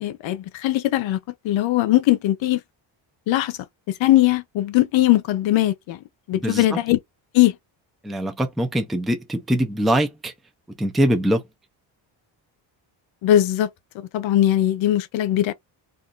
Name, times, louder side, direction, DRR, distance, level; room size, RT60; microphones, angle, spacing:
voice 1, 0.0-1.2 1.4-2.6 3.3-3.6 4.0-6.0 6.3-7.0 7.3-7.5 13.2-13.7 13.9-15.5, left 14 dB, 70° left, 0.7 m, -20 dB
voice 2, 6.3-6.7 8.0-10.3 10.8-11.4, right 1 dB, ahead, 0.3 m, -22 dB
2.5 x 2.4 x 3.7 m
cardioid pair, 150°, 48 cm